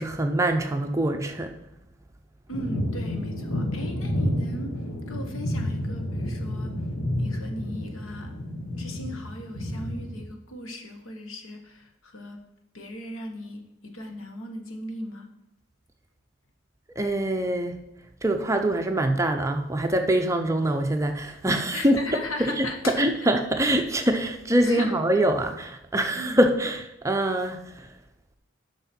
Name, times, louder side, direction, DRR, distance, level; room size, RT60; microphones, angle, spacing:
voice 1, 0.0-1.6 17.0-17.8 18.2-22.0 22.4-22.7 23.0-27.9, right 1 dB, 15° right, 5 dB, 0.6 m, -24 dB
voice 2, 2.5-6.8 7.2-8.3 8.8-12.4 12.7-15.3 21.7-23.0 24.6-24.9 26.1-26.4, left 1 dB, 85° left, 5 dB, 1.3 m, -37 dB
sound 1, 2.5-10.2, equal, 65° left, 1.7 m, -30 dB
9.5 x 6.0 x 4.4 m, 0.86 s
head